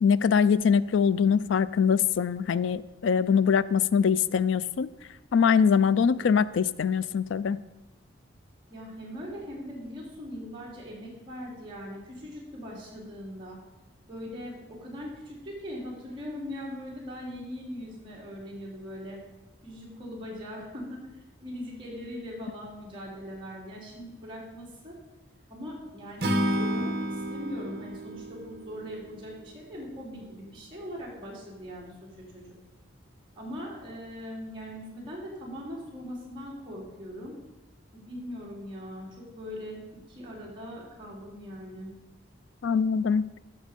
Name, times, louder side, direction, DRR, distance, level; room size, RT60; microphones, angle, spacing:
voice 1, 0.0-4.9 5.3-7.6 42.6-43.2, left 6 dB, 80° left, 17 dB, 0.4 m, -23 dB
voice 2, 8.7-13.6 14.1-19.2 19.6-21.0 21.4-24.9 25.5-32.6 33.4-37.4 37.9-41.9, equal, 25° right, -5 dB, 3.4 m, -40 dB
Acoustic guitar / Strum, 26.2-29.5, equal, 50° right, 1.2 m, -30 dB
14.5 x 6.4 x 5.2 m, 1.0 s
head